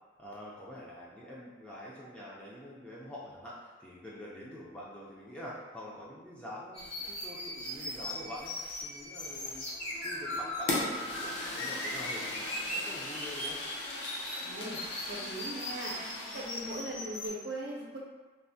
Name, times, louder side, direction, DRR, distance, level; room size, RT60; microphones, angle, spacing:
voice 1, 0.2-9.7 9.9-13.6, left 1 dB, 5° left, -7 dB, 0.3 m, -46 dB
sound 1, 6.7-17.3, left 1 dB, 85° left, 1.3 m, -39 dB
Fire, 10.7-16.6, left 2 dB, 65° left, 0.6 m, -38 dB
voice 2, 14.4-14.8 15.1-16.0 16.3-18.0, right 1 dB, 65° right, -3 dB, 0.6 m, -39 dB
3.2 x 2.1 x 2.6 m, 1.3 s
head